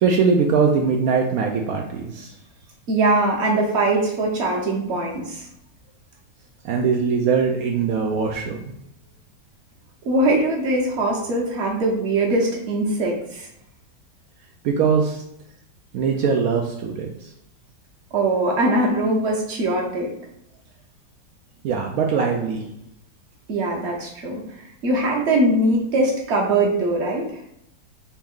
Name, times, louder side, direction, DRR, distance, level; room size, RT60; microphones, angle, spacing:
voice 1, 0.0-2.3 6.6-8.6 14.6-15.2 15.9-17.3 21.6-22.6, right 5 dB, 75° right, 1 dB, 0.8 m, -21 dB
voice 2, 2.9-5.4 10.0-13.5 18.1-20.1 23.5-24.4 24.8-27.4, right 2 dB, 45° right, -1 dB, 1.0 m, -21 dB
4.3 x 3.0 x 3.7 m, 0.76 s
omnidirectional pair, 2.0 m